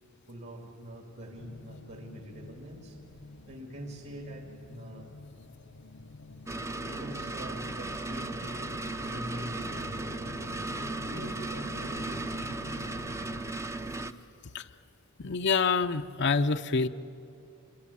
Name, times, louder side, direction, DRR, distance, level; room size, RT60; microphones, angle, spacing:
voice 1, 0.3-3.0 3.5-5.1 6.7-8.6 9.0-10.4 11.0-12.0, equal, 55° right, 3 dB, 2.6 m, -44 dB
sound 1, 1.4-13.5, left 2 dB, 90° left, 1.0 m, -47 dB
sound 2, 6.5-14.1, right 2 dB, 15° right, 0.7 m, -36 dB
voice 2, 15.2-16.9, left 4 dB, 55° left, 8 dB, 0.7 m, -26 dB
26.5 x 23.0 x 8.5 m, 2.6 s
head